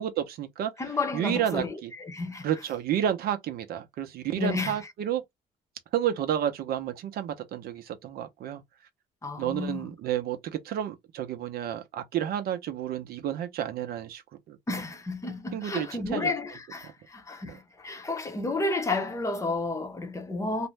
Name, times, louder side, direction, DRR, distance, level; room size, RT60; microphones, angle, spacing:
voice 1, 0.0-0.7 1.1-1.9 2.4-5.2 5.9-8.6 9.4-14.2 14.5-14.6 15.5-16.3, right 10 dB, 65° right, 0.6 m, -30 dB
voice 2, 0.8-2.5 4.4-4.9 9.2-9.9 14.7-20.7, left 3 dB, 20° left, 0.7 m, -31 dB
2.5 x 2.1 x 3.1 m
cardioid pair, 110°, 17 cm